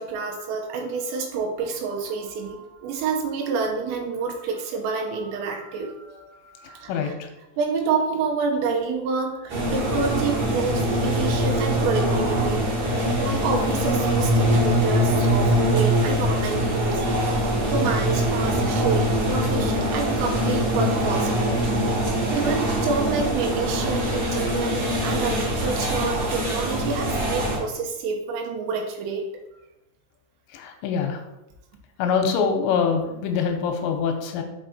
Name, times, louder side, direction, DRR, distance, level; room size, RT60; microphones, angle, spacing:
voice 1, 0.0-7.1 7.6-12.7 13.2-17.0 17.3-17.4 17.7-21.6 22.3-29.3, right 4 dB, 85° right, 1 dB, 3.2 m, -28 dB
voice 2, 6.6-7.3 30.5-31.2 32.0-34.4, left 6 dB, 90° left, 5 dB, 3.0 m, -24 dB
sound 1, 9.5-27.6, equal, 50° right, 2.5 m, -23 dB
5.9 x 5.7 x 4.2 m, 0.94 s
omnidirectional pair, 5.2 m